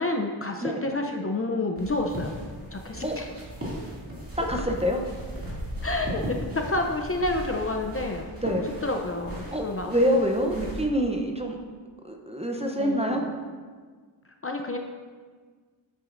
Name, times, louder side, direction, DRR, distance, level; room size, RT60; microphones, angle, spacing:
voice 1, 0.0-2.3 2.7-3.3 4.4-4.5 5.8-9.9 12.6-13.3 14.4-14.8, left 2 dB, 30° left, 3 dB, 0.5 m, -29 dB
sound 1, 1.8-10.8, equal, 30° right, 2.3 m, -37 dB
voice 2, 4.4-5.0 8.4-8.7 9.5-11.6 12.0-13.3, equal, 15° right, 2 dB, 0.6 m, -26 dB
9.5 x 7.7 x 2.5 m, 1.6 s
wide cardioid pair, 140°, 47 cm